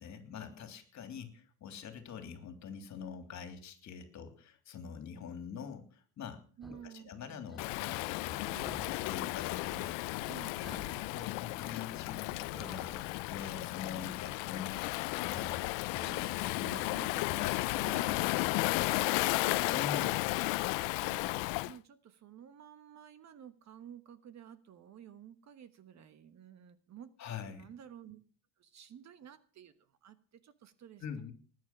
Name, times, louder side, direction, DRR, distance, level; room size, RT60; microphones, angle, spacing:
voice 1, 0.0-6.4 6.7-8.5 8.9-10.3 10.6-15.6 15.9-16.9 17.2-18.2 19.7-20.1 27.2-27.7 31.0-31.3, left 6 dB, 40° left, 7 dB, 3.2 m, -45 dB
sound 1, 6.6-6.9 7.5-7.7 8.6-9.2 9.5-10.3 10.6-13.4, equal, ahead, 0.7 m, -52 dB
voice 2, 6.6-7.5 8.5-9.1 10.3-11.0 16.0-18.3 18.8-27.1 27.4-28.2 28.6-31.3, right 9 dB, 40° right, 12 dB, 1.2 m, -53 dB
Waves surf, 7.6-21.7, left 22 dB, 80° left, 0.7 m, -34 dB
19.5 x 9.6 x 6.1 m, 0.40 s
cardioid pair, 145°, 43 cm